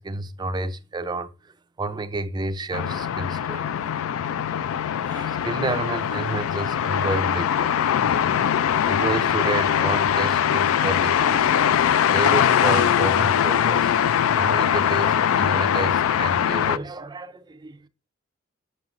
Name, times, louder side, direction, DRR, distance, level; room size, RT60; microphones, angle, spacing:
voice 1, 0.0-1.3 1.8-3.7 5.0-7.7 8.6-13.9 14.4-17.9, right 2 dB, 20° right, 0.4 m, -30 dB
sound 1, 2.7-16.8, left 9 dB, 75° left, 0.3 m, -22 dB
7.2 x 6.3 x 2.5 m
head